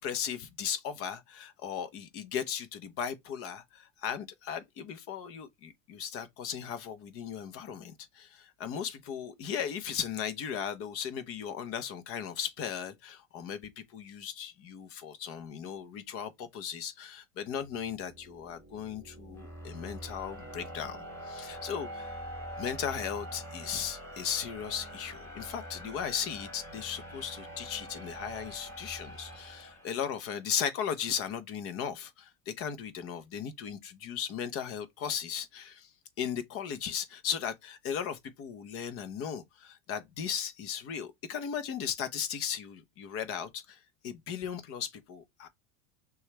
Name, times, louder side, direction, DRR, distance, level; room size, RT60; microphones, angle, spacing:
voice 1, 0.0-21.0 21.2-22.3 22.6-35.9 36.2-45.5, left 8 dB, 35° left, 0.8 m, -37 dB
sound 1, 17.6-30.4, equal, 10° left, 2.9 m, -45 dB
6.2 x 2.4 x 3.0 m
supercardioid pair, 140°, 38 cm